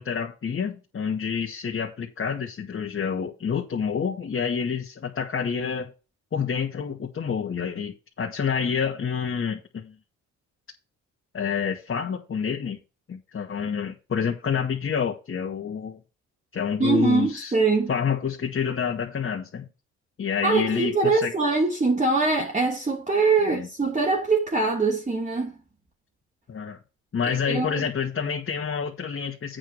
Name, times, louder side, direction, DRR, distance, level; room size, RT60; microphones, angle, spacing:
voice 1, 0.0-5.9 6.3-9.9 11.3-12.8 13.1-16.0 16.5-17.5 17.9-19.7 20.2-21.3 23.4-23.7 26.5-26.8 27.1-29.6, left 6 dB, 45° left, 2.2 m, -28 dB
voice 2, 16.8-17.9 20.4-25.6 27.3-27.8, right 3 dB, 25° right, 2.7 m, -23 dB
8.7 x 4.9 x 6.9 m
cardioid pair, 90°, 30 cm